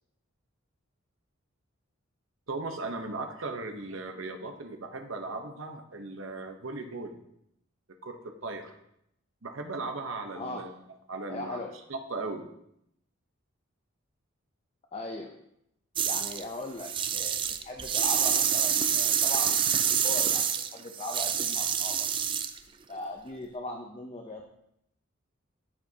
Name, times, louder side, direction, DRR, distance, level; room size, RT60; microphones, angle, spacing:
voice 1, 2.5-7.2 8.0-8.7 9.4-10.7 11.1-11.6 11.9-12.5, right 3 dB, 70° right, 5 dB, 0.9 m, -37 dB
voice 2, 10.4-10.7 11.3-11.8 14.9-15.3 16.0-19.6 20.0-22.1 22.9-24.4, left 2 dB, 30° left, 2 dB, 0.6 m, -39 dB
sound 1, 16.0-16.4 16.8-22.6, right 8 dB, 25° right, 0.3 m, -27 dB
13.0 x 5.1 x 2.8 m, 0.77 s
head